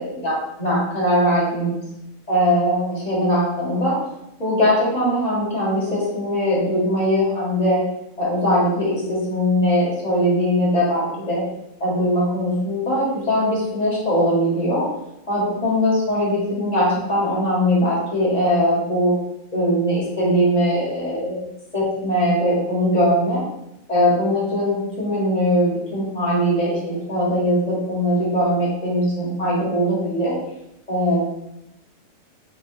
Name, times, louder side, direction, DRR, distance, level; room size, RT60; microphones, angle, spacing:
voice 1, 0.0-1.8 2.3-4.0 4.4-7.8 8.2-11.4 11.8-14.9 15.3-19.1 19.5-21.5 21.7-23.4 23.9-30.4 30.9-31.3, equal, 30° left, -7 dB, 1.8 m, -20 dB
5.9 x 3.3 x 2.7 m, 0.85 s
omnidirectional pair, 1.4 m